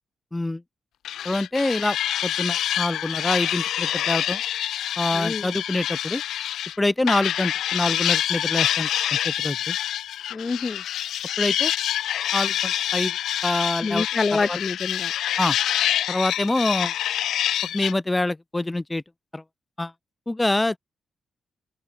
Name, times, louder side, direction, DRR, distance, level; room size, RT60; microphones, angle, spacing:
voice 1, 0.3-0.6 1.2-2.0 2.2-4.4 5.0-6.2 6.8-9.8 11.4-11.7 12.3-13.2 13.4-14.1 14.3-14.6 15.4-15.6 16.1-16.9 17.7-19.0 19.3-19.4 19.8-19.9 20.3-20.8, left 2 dB, 15° left, 1.5 m, -25 dB
sound 1, 1.0-6.8 7.1-17.9, left 11 dB, 85° left, 1.3 m, -26 dB
voice 2, 5.1-5.5 10.3-10.8 13.8-15.1, left 4 dB, 35° left, 1.4 m, -26 dB
open air
cardioid pair, 80°, 0 cm